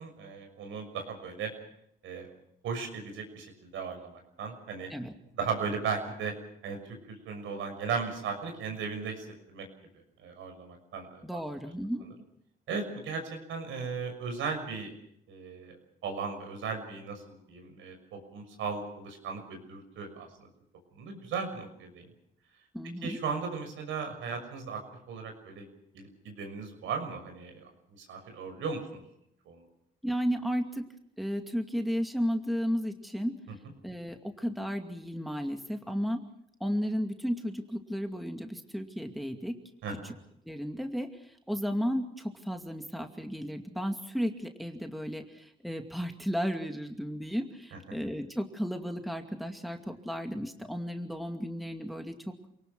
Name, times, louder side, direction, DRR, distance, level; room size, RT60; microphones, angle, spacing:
voice 1, 0.0-1.5 2.0-2.3 2.6-4.9 5.3-6.3 6.6-6.8 7.1-9.7 10.2-11.4 12.7-13.2 13.5-14.9 15.3-15.8 16.0-20.5 20.9-22.1 23.0-24.8 25.1-25.7 25.9-29.0 29.5-29.6 39.8-40.1 47.7-47.8, right 5 dB, 80° right, 5 dB, 6.4 m, -36 dB
voice 2, 11.2-12.0 22.7-23.2 30.0-30.8 31.2-33.4 33.8-36.2 36.6-39.6 40.5-52.3, equal, ahead, 5 dB, 2.3 m, -33 dB
28.0 x 19.0 x 6.2 m, 0.72 s
cardioid pair, 90°, 20 cm